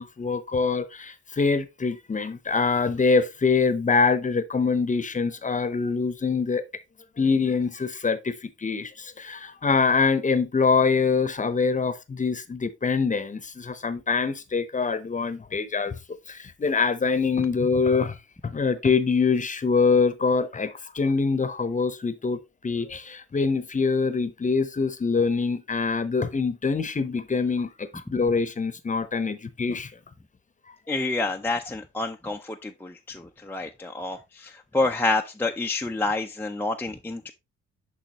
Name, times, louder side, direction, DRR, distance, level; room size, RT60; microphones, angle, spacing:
voice 1, 0.0-6.6 7.2-18.2 18.4-29.9 30.7-30.8, left 4 dB, 25° left, 0.8 m, -24 dB
voice 2, 30.9-37.3, left 2 dB, 5° left, 0.5 m, -28 dB
6.7 x 5.5 x 3.0 m
cardioid pair, 90°, 30 cm